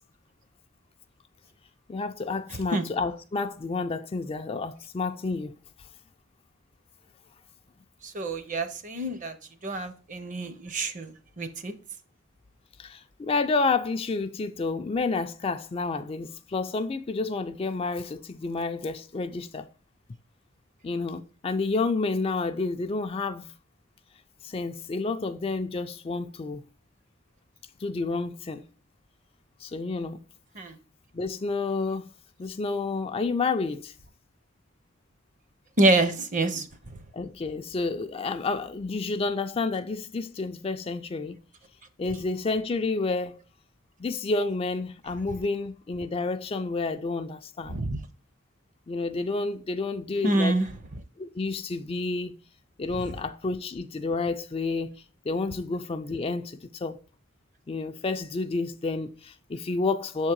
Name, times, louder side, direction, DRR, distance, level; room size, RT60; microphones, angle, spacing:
voice 1, 1.9-5.5 5.8-5.9 12.8-19.7 20.8-23.5 24.4-26.6 27.8-28.6 29.6-30.2 31.1-32.1 32.4-33.9 37.1-41.4 42.0-43.4 44.0-47.8 48.9-50.6 51.2-52.4 52.8-57.0 57.7-60.3, left 3 dB, 25° left, 0.3 m, -30 dB
voice 2, 8.0-9.4 9.6-11.7 30.6-30.8 35.8-37.0 47.7-48.0 50.2-50.7, right 2 dB, 40° right, 0.7 m, -26 dB
7.0 x 3.6 x 4.5 m
head